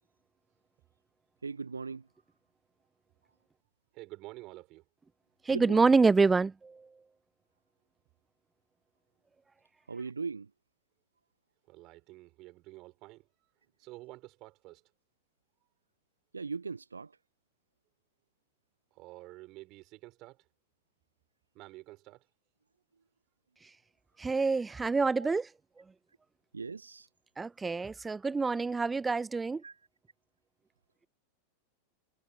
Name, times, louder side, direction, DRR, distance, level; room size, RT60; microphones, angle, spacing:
voice 1, 1.4-2.1 5.5-5.9 9.9-10.5 16.3-17.2 25.2-25.3 26.5-27.1 29.6-29.8, right 4 dB, 75° right, 0.8 m, -39 dB
voice 2, 3.9-4.8 11.7-13.3 13.8-14.8 18.9-20.5 21.5-22.3, right 20 dB, 40° right, 5.9 m, -49 dB
voice 3, 5.5-6.9 24.2-25.5 27.4-29.6, right 4 dB, 10° right, 0.4 m, -27 dB
figure-of-eight pair, 90°, 0 cm